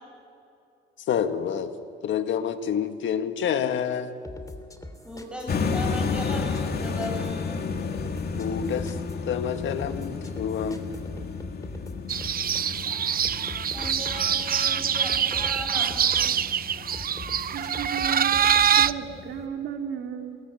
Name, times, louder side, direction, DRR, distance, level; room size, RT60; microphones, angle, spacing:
voice 1, 1.1-1.7 2.0-4.2 8.4-9.0 9.3-10.8, left 8 dB, 70° left, 8 dB, 1.8 m, -28 dB
sound 1, 4.2-18.9, left 2 dB, 15° left, 3.0 m, -43 dB
voice 2, 5.0-7.8 12.8-13.0 13.7-16.3, equal, 5° right, -1 dB, 6.8 m, -37 dB
sound 2, 5.5-19.5, left 5 dB, 55° left, 2.6 m, -33 dB
sound 3, 12.1-18.9, right 8 dB, 50° right, 0.7 m, -24 dB
voice 3, 17.5-20.4, right 8 dB, 80° right, 4 dB, 2.7 m, -34 dB
27.5 x 22.0 x 9.4 m, 2.6 s
cardioid pair, 90°, 20 cm